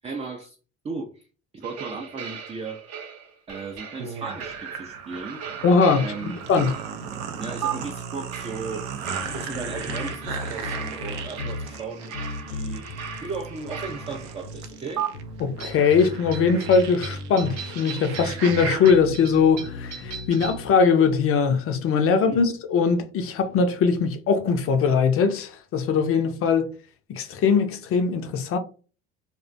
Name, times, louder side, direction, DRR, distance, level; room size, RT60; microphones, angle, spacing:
voice 1, 0.0-0.6 0.8-1.1 1.5-2.8 3.5-5.4 6.0-6.4 7.4-8.9 9.3-12.1 12.4-12.9 13.2-15.0 22.3-22.4, right 4 dB, 20° right, 0.3 m, -35 dB
sound 1, 1.6-7.1 7.6-7.7 8.3-14.4 15.0-15.1 15.6-20.7, right 8 dB, 50° right, 0.7 m, -38 dB
sound 2, 4.0-19.0, right 6 dB, 85° right, 0.5 m, -36 dB
voice 2, 5.6-6.8 15.4-26.7 27.1-28.6, left 5 dB, 45° left, 0.4 m, -21 dB
sound 3, 9.2-20.6, left 2 dB, 90° left, 0.6 m, -37 dB
2.4 x 2.1 x 2.5 m
hypercardioid pair, 70°, 33 cm